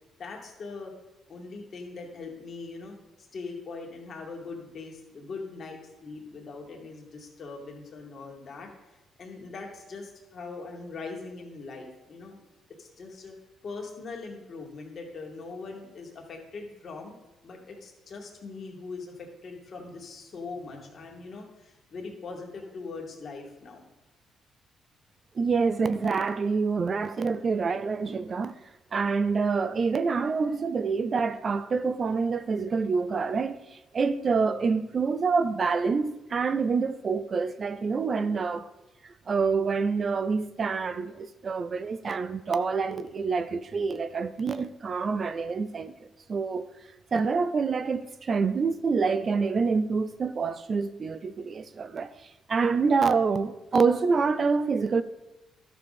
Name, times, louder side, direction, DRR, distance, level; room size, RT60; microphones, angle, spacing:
voice 1, 0.2-0.9 1.3-3.0 3.3-8.7 9.2-12.4 12.8-13.3 13.6-17.1 17.4-23.8, left 4 dB, 50° left, 2.2 m, -41 dB
voice 2, 25.4-28.5 28.9-38.7 39.0-45.9 46.3-46.7 47.1-55.0, right 5 dB, 45° right, 0.4 m, -27 dB
12.0 x 6.6 x 4.2 m
cardioid pair, 90°, 0 cm